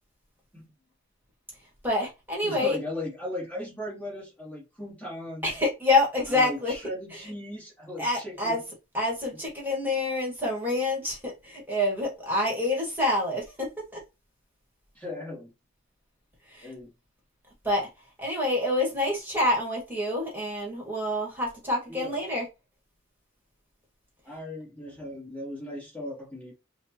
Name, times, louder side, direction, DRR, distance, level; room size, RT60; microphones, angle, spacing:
voice 1, 1.8-2.8 5.4-6.8 7.1-7.3 8.0-14.0 16.5-16.7 17.6-17.9 18.2-22.5, left 2 dB, 10° right, 1.6 m, -27 dB
voice 2, 2.4-5.5 6.3-8.6 14.9-15.5 16.6-16.9 21.9-22.2 24.2-26.5, left 1 dB, 10° left, 1.5 m, -37 dB
6.3 x 2.3 x 2.9 m
head